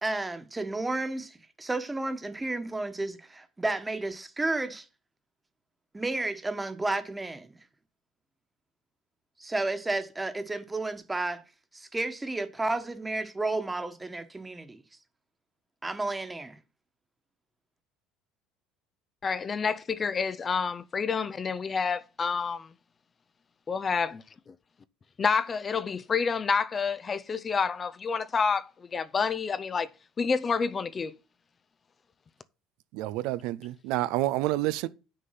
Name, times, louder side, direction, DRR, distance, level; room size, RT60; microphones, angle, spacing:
voice 1, 0.0-4.9 5.9-7.6 9.4-11.4 11.7-14.8 15.8-16.6, right 2 dB, 15° right, 1.3 m, -32 dB
voice 2, 19.2-22.7 23.7-24.2 25.2-29.9 30.2-31.1, left 5 dB, 30° left, 0.5 m, -28 dB
voice 3, 32.9-34.9, right 16 dB, 75° right, 0.4 m, -28 dB
7.6 x 6.5 x 5.8 m
supercardioid pair, 95°, 0 cm